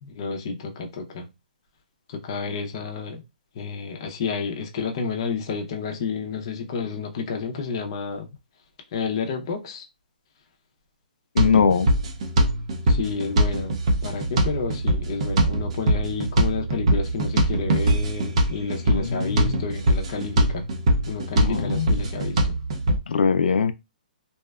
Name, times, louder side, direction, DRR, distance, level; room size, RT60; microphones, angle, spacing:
voice 1, 0.0-1.3 2.2-3.2 3.5-8.3 8.9-9.8 12.9-20.7 21.1-22.6, left 5 dB, 30° left, 0.5 m, -30 dB
voice 2, 11.4-11.9 18.9-19.6 21.3-22.0 23.1-23.7, left 6 dB, 90° left, 0.3 m, -22 dB
sound 1, 11.4-23.0, right 1 dB, 40° right, 0.5 m, -23 dB
2.7 x 2.2 x 2.2 m
hypercardioid pair, 175°, 5 cm